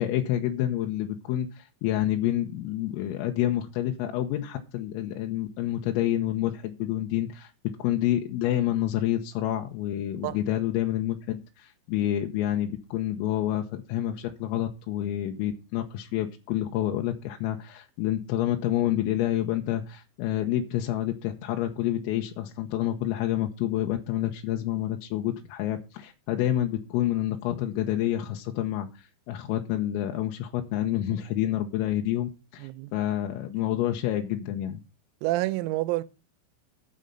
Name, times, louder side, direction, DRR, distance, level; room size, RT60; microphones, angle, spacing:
voice 1, 0.0-7.5 7.8-34.8, left 12 dB, 85° left, 3.7 m, -28 dB
voice 2, 35.2-36.0, right 17 dB, 90° right, 3.5 m, -28 dB
12.0 x 6.5 x 5.6 m
omnidirectional pair, 6.0 m